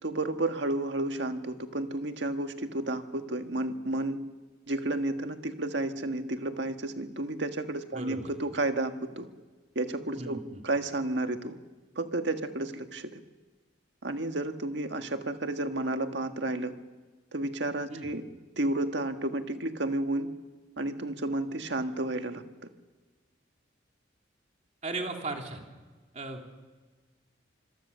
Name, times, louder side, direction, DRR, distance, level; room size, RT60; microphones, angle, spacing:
voice 1, 0.0-4.2 4.7-9.3 9.7-10.4 10.6-11.6 11.9-13.2 14.0-16.7 17.3-18.2 18.6-20.3 20.8-22.4, right 2 dB, 70° right, 7 dB, 1.7 m, -31 dB
voice 2, 7.9-8.3 10.2-10.6 17.9-18.1 24.8-25.6 26.1-26.4, right 2 dB, 35° right, 2 dB, 3.1 m, -36 dB
26.5 x 21.5 x 6.7 m, 1.3 s
head